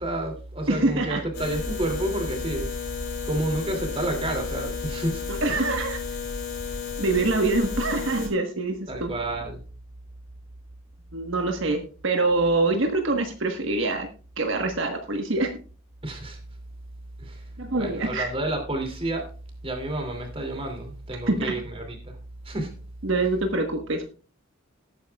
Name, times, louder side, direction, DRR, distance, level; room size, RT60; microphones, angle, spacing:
voice 1, 0.0-2.7 3.2-5.2 5.5-5.6 8.9-9.6 16.0-16.4 17.2-17.4 17.8-19.3 19.6-22.2 22.4-22.8, right 1 dB, 25° right, 4 dB, 2.7 m, -30 dB
voice 2, 0.7-1.2 5.3-6.0 7.0-9.1 11.1-14.1 14.4-15.5 17.6-18.3 21.3-21.5 23.0-24.1, right 2 dB, 70° right, 4 dB, 1.4 m, -25 dB
sound 1, 1.3-8.3, left 5 dB, 50° left, 4.1 m, -33 dB
18.0 x 9.4 x 2.4 m, 0.36 s
head